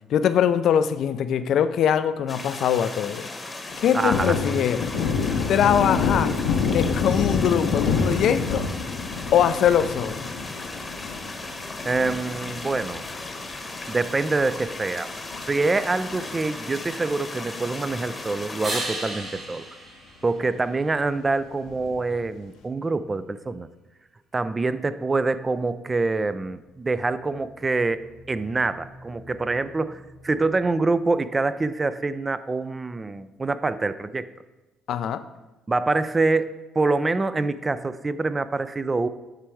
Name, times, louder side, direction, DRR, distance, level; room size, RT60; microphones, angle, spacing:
voice 1, 0.1-3.3 3.8-4.9 5.5-6.3 6.7-8.7 9.3-10.2 34.9-35.2, left 9 dB, 70° left, 12 dB, 0.4 m, -22 dB
sound 1, 2.3-18.9, left 2 dB, 25° left, 1.0 m, -36 dB
Thunder, 3.7-14.4 14.8-14.9 15.3-16.8 17.0-17.2 17.5-18.4 18.8-18.9 19.2-19.3 21.7-22.2, left 5 dB, 85° left, 0.8 m, -28 dB
voice 2, 3.9-4.3 11.8-13.0 13.9-15.1 15.5-19.7 20.2-23.7 24.3-34.3 35.7-39.1, right 3 dB, 25° right, 14 dB, 0.4 m, -25 dB
sound 2, 18.6-21.2 26.9-30.9, right 1 dB, 45° right, 2.3 m, -38 dB
8.9 x 3.4 x 4.7 m, 1.1 s
supercardioid pair, 75°, 0 cm